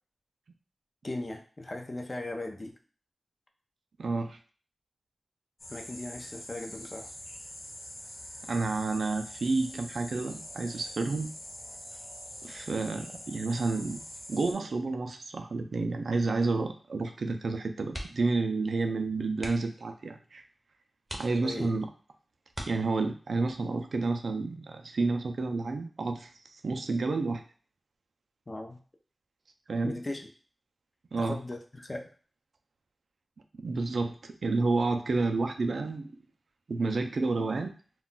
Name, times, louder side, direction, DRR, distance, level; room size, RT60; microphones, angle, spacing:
voice 1, 1.0-2.7 5.7-7.1 21.4-21.8 28.5-28.8 29.8-30.3 31.2-32.1, left 2 dB, 35° left, 3 dB, 0.5 m, -38 dB
voice 2, 4.0-4.4 8.5-11.3 12.4-14.0 14.3-20.4 21.1-21.9 22.7-27.4 29.7-29.9 31.1-31.4 33.5-36.1 36.7-37.7, right 3 dB, 80° right, 6 dB, 0.3 m, -30 dB
sound 1, 5.6-14.5, left 1 dB, 70° left, 1.0 m, -44 dB
sound 2, 17.9-18.4 18.7-18.9 19.3-19.8 20.4-20.5 21.0-21.8 22.5-23.3 24.8-25.2 25.5-25.6, equal, 5° right, 0.6 m, -42 dB
2.2 x 2.2 x 3.8 m, 0.41 s
wide cardioid pair, 75°, 0 cm